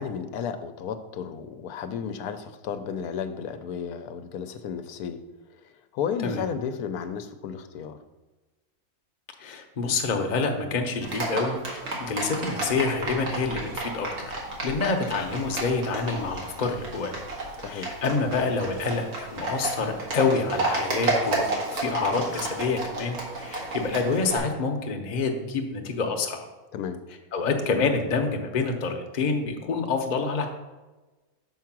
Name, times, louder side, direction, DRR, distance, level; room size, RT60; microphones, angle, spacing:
voice 1, 0.0-5.2 5.9-8.0 17.6-17.9 26.7-27.0, left 7 dB, 85° left, 8 dB, 1.1 m, -33 dB
voice 2, 9.4-14.3 14.6-17.1 17.7-26.5 27.3-30.5, left 4 dB, 40° left, 3 dB, 0.7 m, -27 dB
Livestock farm animals working animals, 11.0-24.4, right 2 dB, 80° right, 2.0 m, -32 dB
5.9 x 4.7 x 6.0 m, 1.2 s
omnidirectional pair, 1.6 m